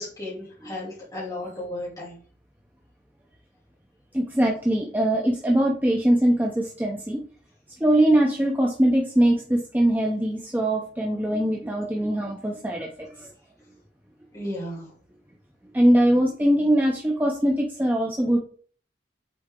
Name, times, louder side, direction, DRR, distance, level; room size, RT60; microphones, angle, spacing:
voice 1, 0.0-2.1 14.3-14.8, left 1 dB, 20° left, -8 dB, 2.7 m, -34 dB
voice 2, 4.1-7.2 7.8-12.9 13.2-13.3 15.7-18.4, right 1 dB, 10° right, 0 dB, 0.7 m, -22 dB
6.7 x 4.2 x 3.7 m, 0.43 s
head